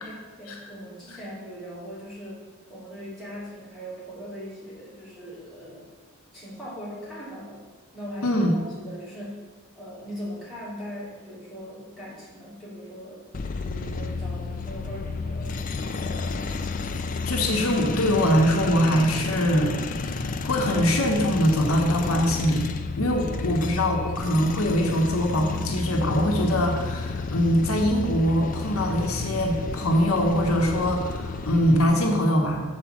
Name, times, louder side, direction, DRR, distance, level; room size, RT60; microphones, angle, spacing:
voice 1, 0.0-5.9 6.3-7.6 7.9-9.5 9.8-16.5 23.4-23.6, equal, ahead, -9 dB, 3.0 m, -40 dB
sound 1, 13.3-31.8, left 3 dB, 35° left, 0.4 m, -31 dB
voice 2, 17.3-19.7 20.4-22.7 23.0-32.6, equal, 80° left, 1 dB, 1.2 m, -23 dB
7.5 x 4.8 x 7.1 m, 1.3 s
head